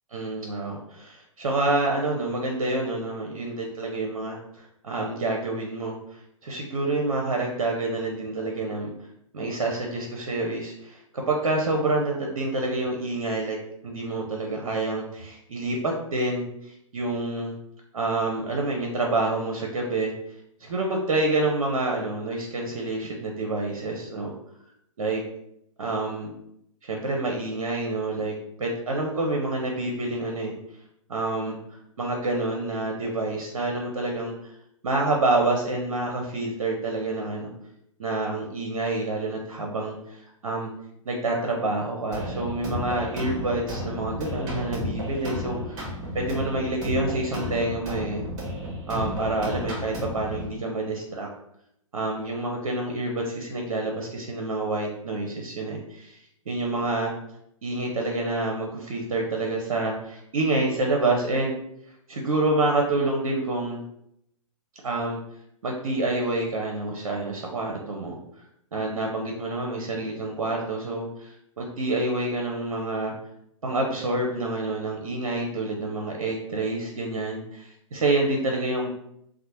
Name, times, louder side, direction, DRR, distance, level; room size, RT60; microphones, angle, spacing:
voice 1, 0.1-8.9 9.3-13.6 13.8-17.5 17.9-20.1 20.6-24.3 25.0-25.2 25.8-26.3 26.8-30.5 31.1-34.3 34.8-37.5 38.0-40.7 41.1-45.8 46.1-48.2 48.9-51.3 51.9-56.2 56.5-57.1 57.6-61.6 62.1-63.8 64.8-65.2 65.6-68.2 68.7-73.1 73.6-78.9, right 2 dB, 65° right, 0 dB, 0.5 m, -28 dB
sound 1, 42.1-50.5, equal, 25° right, 0.8 m, -33 dB
2.8 x 2.0 x 2.8 m, 0.76 s
figure-of-eight pair, 110°, 18 cm